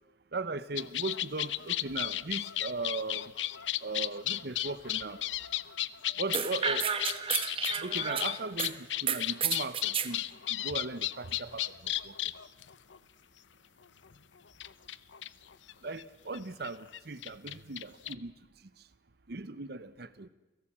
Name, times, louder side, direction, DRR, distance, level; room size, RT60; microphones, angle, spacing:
voice 1, 0.3-3.3 3.8-5.2 6.2-6.9 7.8-12.1 15.8-18.3 19.3-20.3, right 3 dB, 60° right, 0.8 m, -38 dB
sound 1, 0.8-13.0 14.0-14.1 14.6-16.0 16.3-16.4 16.6-18.1, left 13 dB, 85° left, 0.7 m, -34 dB
sound 2, 6.3-8.7 9.1-10.1, right 7 dB, 30° right, 1.3 m, -31 dB
29.0 x 17.0 x 7.4 m
head